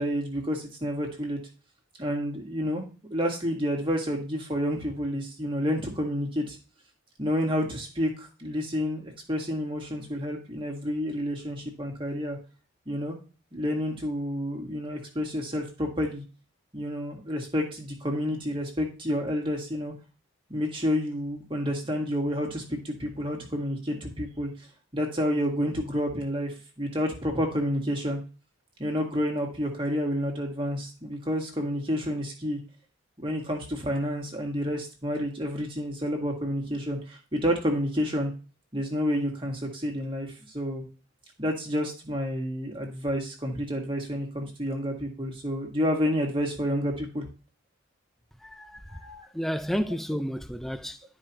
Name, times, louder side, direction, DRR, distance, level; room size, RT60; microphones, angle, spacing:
voice 1, 0.0-1.4 2.0-2.8 3.1-6.6 7.2-12.4 12.9-13.2 13.5-16.2 16.7-19.9 20.5-24.5 24.9-28.2 28.8-32.6 33.2-38.3 38.7-40.9 41.4-47.3 48.9-49.3, equal, 25° right, 1.7 m, -29 dB
voice 2, 48.4-51.0, equal, ahead, 0.4 m, -32 dB
12.0 x 4.9 x 2.9 m
head